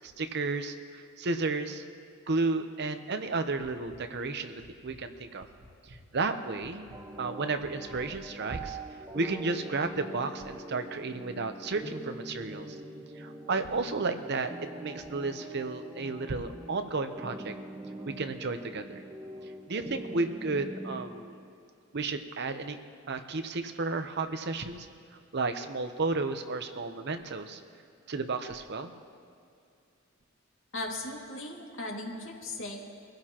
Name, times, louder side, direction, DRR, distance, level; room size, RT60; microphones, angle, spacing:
voice 1, 0.0-1.8 2.3-5.5 6.1-6.9 7.2-8.8 9.1-12.8 13.2-14.5 14.8-17.5 18.2-19.0 19.7-21.4 21.9-22.8 23.1-24.9 25.3-27.6 28.1-28.9, right 3 dB, 55° right, 8 dB, 0.8 m, -32 dB
sound 1, 3.9-4.0 4.6-5.0 5.6-6.0 6.6-7.0 7.6-8.0, equal, 80° right, 1.8 m, -53 dB
sound 2, 6.9-21.1, right 2 dB, 15° right, 0.8 m, -43 dB
voice 2, 30.7-32.8, left 2 dB, 70° left, -1 dB, 2.2 m, -37 dB
24.0 x 15.5 x 3.0 m, 2.3 s
head